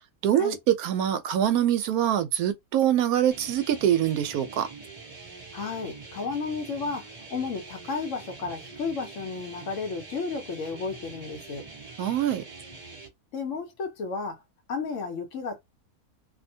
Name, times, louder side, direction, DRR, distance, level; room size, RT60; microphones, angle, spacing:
voice 1, 0.2-4.7 12.0-12.4, right 10 dB, 75° right, 1.0 m, -24 dB
sound 1, 3.3-13.1, right 4 dB, 25° right, 1.1 m, -44 dB
voice 2, 5.5-11.6 13.3-14.4 14.7-15.6, left 4 dB, 65° left, 0.9 m, -33 dB
2.6 x 2.1 x 2.7 m
omnidirectional pair, 1.6 m